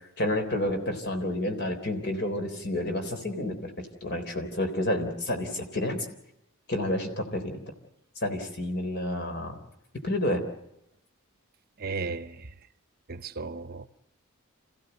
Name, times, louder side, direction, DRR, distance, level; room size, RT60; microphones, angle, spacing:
voice 1, 0.2-3.7 4.0-6.1 6.7-7.6 8.2-9.6 10.0-10.4, left 1 dB, 55° left, 3.7 m, -29 dB
voice 2, 11.8-12.5 13.1-13.9, right 4 dB, 45° right, 0.8 m, -35 dB
28.0 x 16.0 x 8.0 m
head